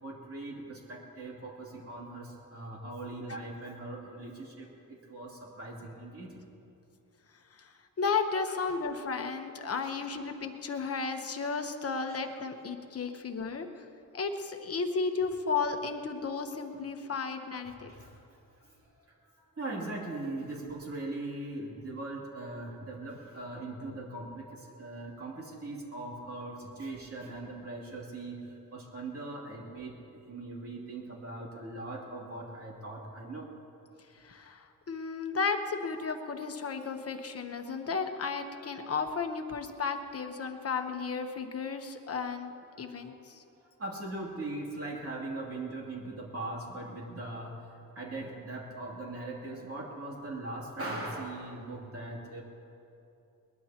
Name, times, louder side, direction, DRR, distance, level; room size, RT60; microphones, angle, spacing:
voice 1, 0.0-6.4 8.5-8.6 9.8-10.1 12.1-12.2 12.6-12.7 17.7-18.2 18.6-18.9 19.3-33.5 42.7-43.0 43.3-52.4, right 2 dB, 40° right, -3 dB, 2.9 m, -40 dB
voice 2, 8.0-13.8 14.1-17.9 34.2-42.5 42.8-43.4, left 5 dB, 40° left, 6 dB, 1.0 m, -34 dB
21.5 x 21.0 x 2.9 m, 2.7 s
wide cardioid pair, 175°, 35 cm